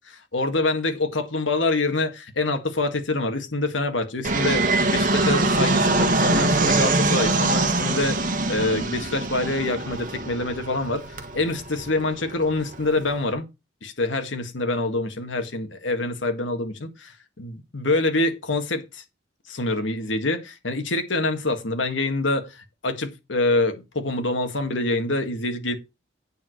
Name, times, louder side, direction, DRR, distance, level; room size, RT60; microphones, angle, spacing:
voice 1, 0.3-13.5 13.8-19.0 19.5-25.8, left 2 dB, 85° left, 1.7 m, -26 dB
Fixed-wing aircraft airplane, 4.2-13.3, right 2 dB, 45° right, 1.5 m, -23 dB
8.9 x 4.7 x 6.4 m
head